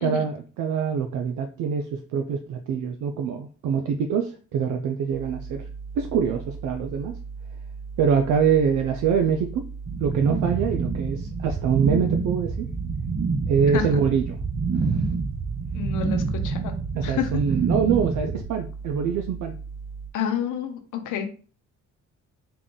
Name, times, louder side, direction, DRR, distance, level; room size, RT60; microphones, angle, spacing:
voice 1, 0.0-5.7 6.0-7.1 8.0-9.6 10.0-12.7 13.5-14.4 14.8-15.0 16.9-19.5, right 7 dB, 75° right, 5 dB, 0.5 m, -24 dB
sound 1, 5.1-20.1, right 5 dB, 60° left, 1.3 m, -38 dB
sound 2, 9.9-18.4, right 4 dB, 30° right, 0.6 m, -27 dB
voice 2, 15.7-16.7 17.0-17.4 20.1-21.3, left 8 dB, 80° left, 6 dB, 0.8 m, -29 dB
3.8 x 2.3 x 3.8 m, 0.40 s
cardioid pair, 90°, 30 cm